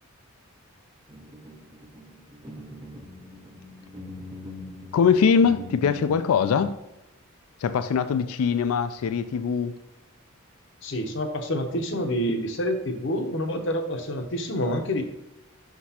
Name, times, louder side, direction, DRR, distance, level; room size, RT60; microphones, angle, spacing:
sound 1, 1.1-6.7, left 2 dB, 20° right, 0.8 m, -42 dB
voice 1, 4.9-6.8 7.6-9.7, left 6 dB, 80° left, 0.3 m, -22 dB
voice 2, 10.8-15.0, equal, 55° left, 0.7 m, -27 dB
6.2 x 5.9 x 2.8 m
head